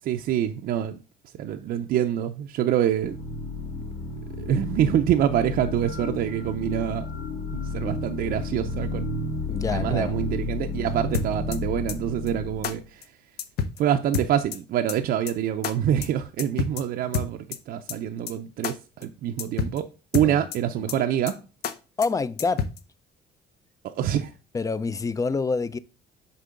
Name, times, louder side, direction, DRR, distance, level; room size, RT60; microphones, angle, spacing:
voice 1, 0.1-1.0 1.4-3.2 4.4-7.1 7.5-9.1 9.7-13.0 13.8-19.8 20.1-21.4 23.8-24.3, right 10 dB, 65° right, 0.5 m, -26 dB
sound 1, 3.0-12.8, left 2 dB, 85° left, 2.0 m, -32 dB
voice 2, 9.5-10.2 20.2-20.5 20.8-20.9 22.0-22.7 24.5-25.8, left 4 dB, 20° left, 0.4 m, -27 dB
sound 2, 11.1-11.6 11.9-12.0 12.3-12.4 12.6-12.7 13.0-13.1 13.4-13.8 14.1-14.6 14.9-15.0 15.3-15.4 15.6-15.7 16.0-16.1 16.4-16.8 17.1-17.6 17.9-18.0 18.3-18.4 18.6-18.7 19.0-19.1 19.4-19.8 20.1-20.6 20.9-21.0 21.3-21.4 21.6-21.7 22.0-22.1 22.4-22.8, left 7 dB, 70° left, 0.6 m, -28 dB
6.7 x 4.3 x 3.7 m
cardioid pair, 110°, 17 cm